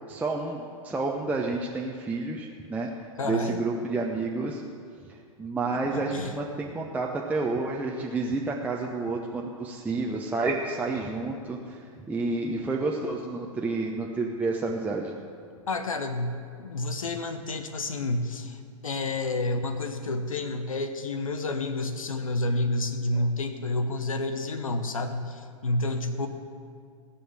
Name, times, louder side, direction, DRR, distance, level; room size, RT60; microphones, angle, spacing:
voice 1, 0.1-2.9 3.2-4.6 5.1-11.8 12.1-15.1, right 3 dB, 10° right, -1 dB, 0.9 m, -30 dB
voice 2, 3.2-3.6 5.9-6.3 15.7-26.3, left 2 dB, 75° left, 8 dB, 1.0 m, -29 dB
16.5 x 7.0 x 7.5 m, 2.2 s
figure-of-eight pair, 100°, 18 cm